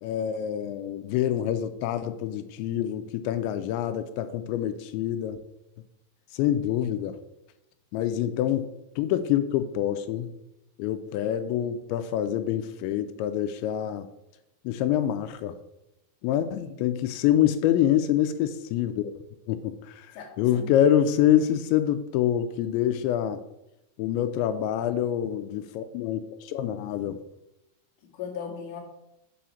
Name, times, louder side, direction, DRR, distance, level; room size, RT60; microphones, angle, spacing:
voice 1, 0.0-5.4 6.3-7.2 7.9-8.7 9.0-10.4 10.8-14.1 14.7-15.5 16.2-19.1 19.5-20.1 20.4-23.4 24.0-27.2, left 11 dB, 85° left, 10 dB, 2.8 m, -26 dB
voice 2, 16.3-16.8 20.1-20.7 28.1-28.8, left 7 dB, 55° left, -1 dB, 2.5 m, -39 dB
7.5 x 4.8 x 7.0 m, 0.87 s
omnidirectional pair, 5.4 m